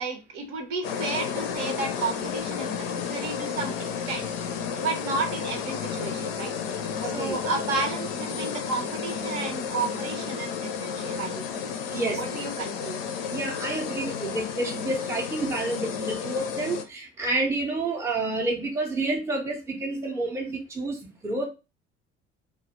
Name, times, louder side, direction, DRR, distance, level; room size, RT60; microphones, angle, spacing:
voice 1, 0.0-4.3 4.5-11.4 12.0-13.0, right 4 dB, 60° right, 0.7 m, -32 dB
sound 1, 0.8-16.8, left 7 dB, 65° left, 0.5 m, -32 dB
voice 2, 7.0-7.4 11.9-12.2 13.3-21.5, right 2 dB, 10° right, 0.5 m, -29 dB
2.1 x 2.1 x 2.8 m
figure-of-eight pair, 50°, 34 cm